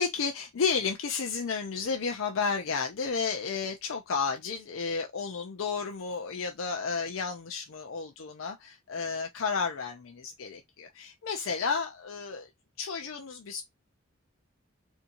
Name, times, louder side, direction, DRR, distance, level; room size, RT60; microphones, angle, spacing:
voice 1, 0.0-12.5 12.8-13.6, left 5 dB, 85° left, 0.5 m, -32 dB
3.5 x 2.7 x 2.8 m
head